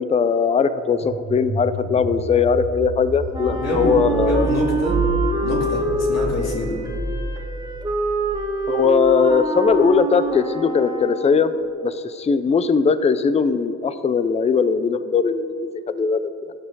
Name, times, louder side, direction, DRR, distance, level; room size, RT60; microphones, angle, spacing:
voice 1, 0.0-4.5 8.7-11.5 11.8-16.5, left 5 dB, 20° left, 13 dB, 0.4 m, -19 dB
sound 1, 0.8-9.5, right 2 dB, 60° right, 2.2 m, -29 dB
Wind instrument woodwind instrument, 3.3-11.4, right 2 dB, 15° right, 1.2 m, -26 dB
voice 2, 3.4-5.0 5.4-6.8, left 1 dB, 60° left, -1 dB, 2.5 m, -26 dB
16.5 x 5.7 x 4.0 m, 2.5 s
cardioid pair, 90°, 30 cm